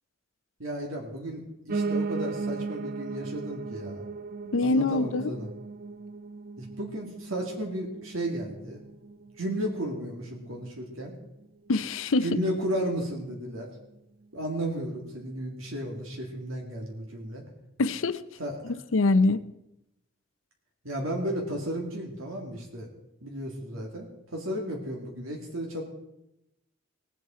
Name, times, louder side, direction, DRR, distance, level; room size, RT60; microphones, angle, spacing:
voice 1, 0.6-4.1 4.6-5.5 6.6-8.8 9.4-11.1 12.2-13.7 14.3-17.4 18.4-18.7 20.8-22.9 23.2-25.8, right 1 dB, 75° right, 2.2 m, -34 dB
Piano, 1.7-10.8 11.2-12.4 12.6-12.7 13.0-13.1 13.3-13.4 14.0-14.1, right 4 dB, 45° right, 0.5 m, -37 dB
voice 2, 4.5-5.3 11.7-12.4 17.8-18.2 18.6-19.4, left 3 dB, 70° left, 0.6 m, -24 dB
18.5 x 8.4 x 4.4 m
head